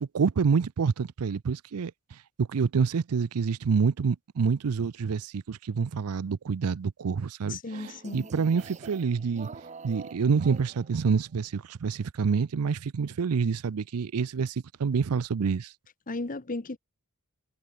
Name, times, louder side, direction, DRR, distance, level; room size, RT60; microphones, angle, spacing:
voice 1, 0.0-15.7, right 5 dB, 85° right, 0.5 m, -27 dB
voice 2, 7.5-8.3 16.1-16.8, left 2 dB, 40° left, 1.1 m, -35 dB
sound 1, 7.7-11.2, right 4 dB, 30° right, 0.9 m, -46 dB
head